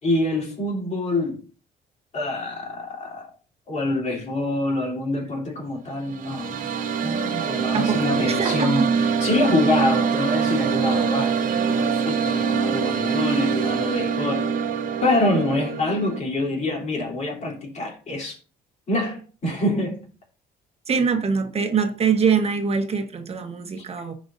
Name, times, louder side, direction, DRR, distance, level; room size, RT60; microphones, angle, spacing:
voice 1, 0.0-1.4 2.1-3.3 3.7-6.7 7.0-8.9 9.2-14.5 15.0-18.4 18.9-20.0 20.9-21.0, left 2 dB, 40° left, 3.6 m, -26 dB
sound 1, 5.9-16.2, right 6 dB, 55° right, 0.9 m, -24 dB
voice 2, 7.7-8.8 20.9-24.1, right 6 dB, 35° right, 1.2 m, -23 dB
15.0 x 5.2 x 2.7 m
cardioid pair, 110°, 17 cm